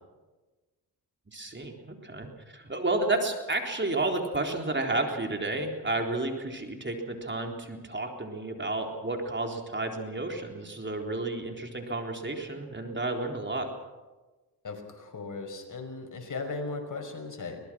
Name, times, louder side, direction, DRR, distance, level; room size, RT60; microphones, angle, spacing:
voice 1, 1.3-13.7, right 2 dB, 25° right, 3 dB, 4.0 m, -31 dB
voice 2, 14.6-17.6, left 3 dB, 45° left, 4 dB, 5.7 m, -37 dB
23.5 x 20.0 x 6.3 m, 1.2 s
cardioid pair, 65°, 42 cm